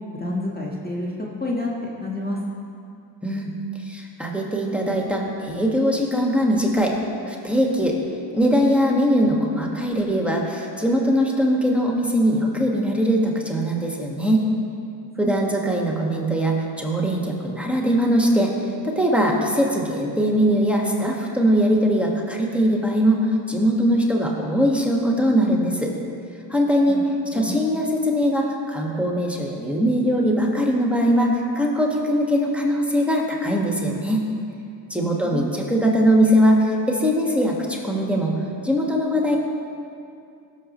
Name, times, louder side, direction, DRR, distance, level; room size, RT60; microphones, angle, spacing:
voice 1, 0.2-2.4 15.2-15.6 26.9-27.0 27.3-27.5 35.0-35.6, left 2 dB, 20° left, -3 dB, 1.7 m, -29 dB
voice 2, 3.2-3.5 3.8-6.9 7.3-8.0 8.3-14.5 15.2-18.5 18.8-25.9 26.5-27.0 27.3-34.3 34.9-38.4 38.6-39.4, equal, ahead, -1 dB, 1.9 m, -21 dB
16.5 x 7.2 x 3.2 m, 2.5 s
hypercardioid pair, 45°, 50 cm